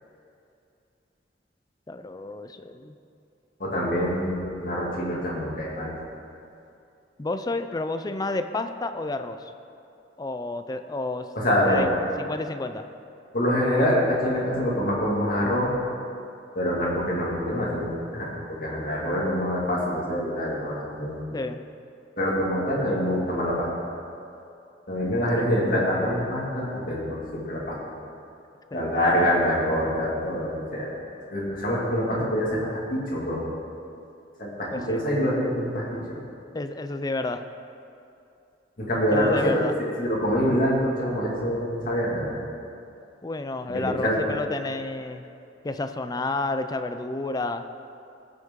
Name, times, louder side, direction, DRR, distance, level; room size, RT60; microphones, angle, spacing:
voice 1, 1.9-2.9 4.0-4.1 7.2-9.5 10.2-11.3 11.7-12.8 21.3-21.6 25.4-25.5 28.7-29.4 34.7-35.0 36.5-37.4 39.1-39.7 43.2-45.2 45.6-47.6, left 2 dB, 20° left, 9 dB, 0.4 m, -31 dB
voice 2, 3.6-5.9 11.4-11.8 13.3-15.7 16.5-21.2 22.2-23.8 24.9-27.8 28.7-30.9 31.3-32.6 32.9-33.4 34.4-36.2 38.8-39.6 40.0-42.4 43.7-44.3, equal, 50° left, -5 dB, 2.5 m, -25 dB
16.0 x 6.4 x 3.7 m, 2.6 s
head